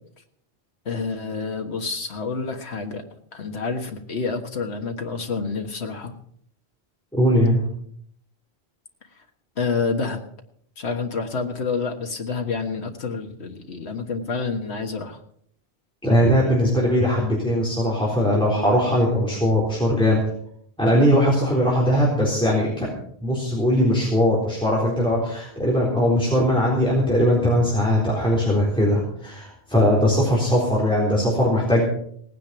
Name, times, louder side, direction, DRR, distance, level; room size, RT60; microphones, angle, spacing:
voice 1, 0.8-3.0 3.3-6.1 9.2-9.3 9.6-10.2 10.8-15.2, left 4 dB, 85° left, 3 dB, 1.8 m, -28 dB
voice 2, 7.1-7.6 16.0-20.2 20.8-22.9 23.2-31.9, equal, 5° left, -5 dB, 3.9 m, -20 dB
18.5 x 9.7 x 5.9 m, 0.65 s
omnidirectional pair, 1.1 m